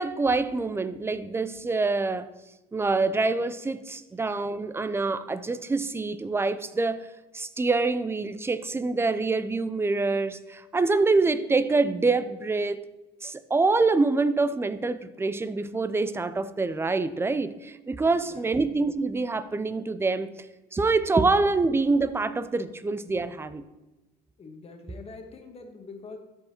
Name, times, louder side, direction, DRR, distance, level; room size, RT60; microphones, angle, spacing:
voice 1, 0.0-2.3 2.7-7.1 7.3-12.8 13.2-20.3 20.7-23.6, right 3 dB, 15° right, 0.4 m, -26 dB
voice 2, 18.0-18.5 24.4-26.2, left 3 dB, 35° left, 1.3 m, -44 dB
13.0 x 5.4 x 2.9 m
cardioid pair, 110°, 17 cm